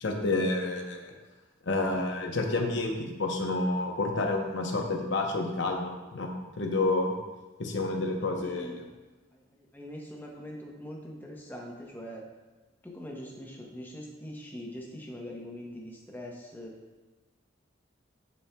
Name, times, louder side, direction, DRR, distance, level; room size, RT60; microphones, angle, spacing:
voice 1, 0.0-1.1 1.7-6.3 6.6-7.1 7.6-8.7, left 2 dB, 60° left, 2 dB, 0.8 m, -29 dB
voice 2, 8.4-8.8 9.3-12.2 12.8-16.8, equal, 10° left, -1 dB, 0.7 m, -42 dB
10.0 x 4.3 x 2.2 m, 1.2 s
head